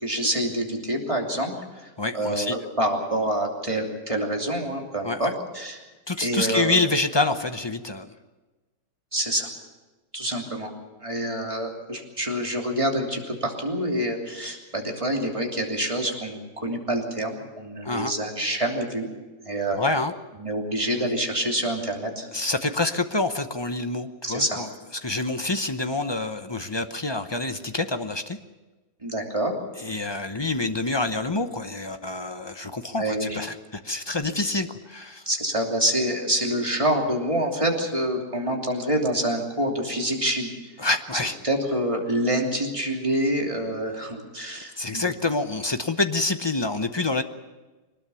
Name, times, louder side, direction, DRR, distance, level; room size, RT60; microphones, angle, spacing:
voice 1, 0.0-1.5 1.8-5.8 6.2-6.8 9.1-9.5 10.1-10.7 11.0-19.1 19.4-19.8 20.4-22.3 24.2-24.6 29.0-29.5 29.9-30.0 33.0-33.4 35.3-40.7 41.4-45.0, right 1 dB, 20° right, 0 dB, 3.0 m, -27 dB
voice 2, 2.0-2.6 5.0-5.3 6.1-8.1 17.8-18.1 19.7-20.1 22.3-24.7 25.0-28.4 29.8-35.3 40.8-41.4 44.8-47.2, left 2 dB, 30° left, 8 dB, 0.5 m, -27 dB
22.0 x 19.5 x 7.1 m, 1.2 s
omnidirectional pair, 1.8 m